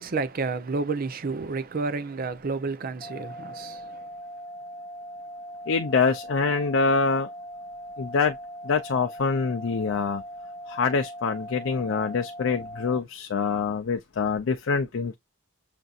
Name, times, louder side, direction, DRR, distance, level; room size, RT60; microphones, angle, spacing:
voice 1, 0.0-4.0, right 4 dB, 45° right, 0.5 m, -30 dB
sound 1, 3.0-13.0, equal, 10° left, 0.8 m, -40 dB
voice 2, 5.7-7.3 8.0-8.4 8.6-10.2 10.7-15.2, left 4 dB, 70° left, 0.5 m, -25 dB
6.7 x 2.6 x 2.4 m
head